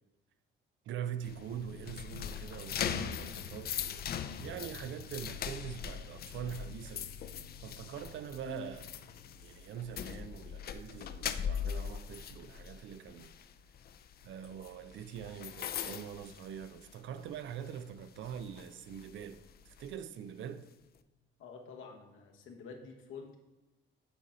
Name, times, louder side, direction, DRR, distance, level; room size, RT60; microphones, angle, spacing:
voice 1, 0.9-4.1 4.4-7.1 7.6-8.9 9.4-13.3 14.2-20.7, right 9 dB, 75° right, 0.5 m, -43 dB
sound 1, 1.2-17.2 17.5-17.8 18.2-19.9, left 8 dB, 50° left, 0.4 m, -41 dB
voice 2, 21.4-23.4, left 5 dB, 85° left, 1.0 m, -48 dB
7.9 x 4.1 x 4.0 m
cardioid pair, 90°, 20 cm